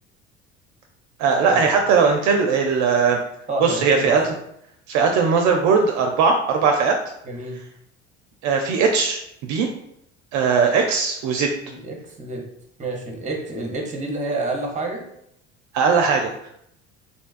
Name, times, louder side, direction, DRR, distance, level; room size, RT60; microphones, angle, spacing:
voice 1, 1.2-3.2 3.6-4.2 4.9-7.0 8.4-9.2 9.5-9.7 10.3-11.5 15.7-16.5, right 5 dB, 60° right, 3 dB, 0.4 m, -19 dB
voice 2, 3.5-4.2 7.2-7.6 11.7-12.4 12.8-15.0, right 2 dB, 20° right, 1 dB, 0.8 m, -28 dB
2.6 x 2.2 x 2.4 m, 0.74 s
hypercardioid pair, 65°, 32 cm